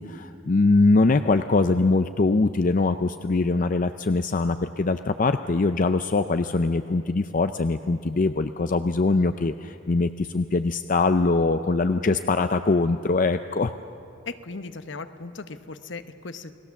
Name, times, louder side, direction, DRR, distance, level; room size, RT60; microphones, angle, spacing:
voice 1, 0.0-13.7, left 3 dB, 40° left, 9 dB, 0.5 m, -22 dB
voice 2, 14.2-16.5, left 3 dB, 60° left, 10 dB, 1.0 m, -37 dB
29.5 x 19.5 x 7.1 m, 2.7 s
head